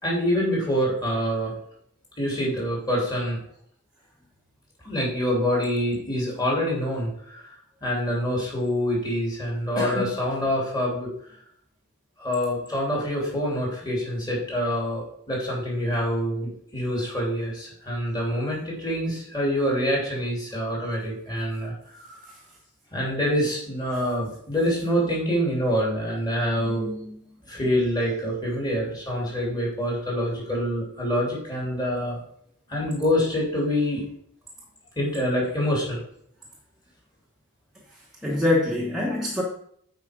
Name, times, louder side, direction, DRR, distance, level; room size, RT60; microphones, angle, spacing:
voice 1, 0.0-1.5 2.2-3.4 4.8-7.4 7.8-11.1 12.2-21.7 22.0-22.2 22.9-26.9 27.5-32.2 32.7-34.0 35.0-36.0, equal, 20° left, 3.1 m, -26 dB
voice 2, 26.6-27.1 38.2-39.4, left 2 dB, ahead, 1.1 m, -25 dB
8.2 x 4.9 x 5.1 m
head